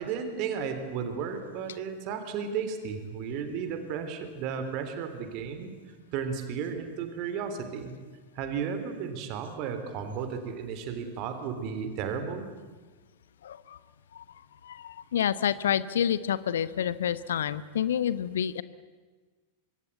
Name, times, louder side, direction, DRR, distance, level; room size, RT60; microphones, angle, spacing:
voice 1, 0.0-7.9 8.3-12.5, right 6 dB, 40° right, 8 dB, 3.3 m, -34 dB
voice 2, 13.4-13.8 14.1-14.2 14.6-18.6, left 9 dB, 65° left, 16 dB, 1.0 m, -28 dB
25.5 x 24.0 x 8.4 m, 1.4 s
figure-of-eight pair, 90°, 0 cm